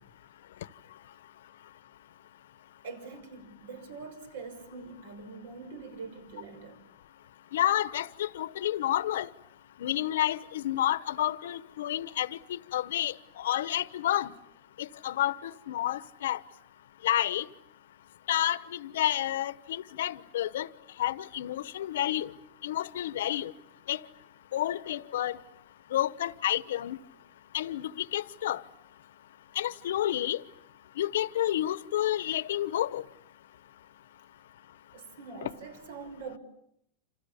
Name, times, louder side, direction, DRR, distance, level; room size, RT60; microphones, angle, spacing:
voice 1, 2.8-6.8 34.9-36.4, right 4 dB, 75° right, 6.1 m, -44 dB
voice 2, 7.5-9.3 9.8-14.3 14.8-16.4 17.0-17.5 18.3-20.7 21.0-22.3 22.6-23.5 23.9-24.0 24.5-25.4 25.9-27.0 27.5-28.6 29.5-30.4 31.0-33.0 35.4-35.5, left 12 dB, 90° left, 1.1 m, -30 dB
29.0 x 28.0 x 7.1 m
supercardioid pair, 180°, 0 cm